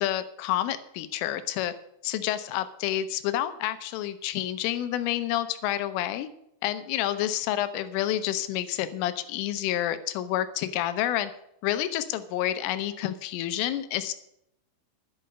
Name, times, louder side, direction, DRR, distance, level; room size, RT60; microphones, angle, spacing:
voice 1, 0.0-1.7 2.0-6.3 6.6-11.3 11.6-14.1, left 12 dB, 90° left, 12 dB, 3.4 m, -29 dB
11.0 x 11.0 x 5.3 m, 0.77 s
omnidirectional pair, 5.6 m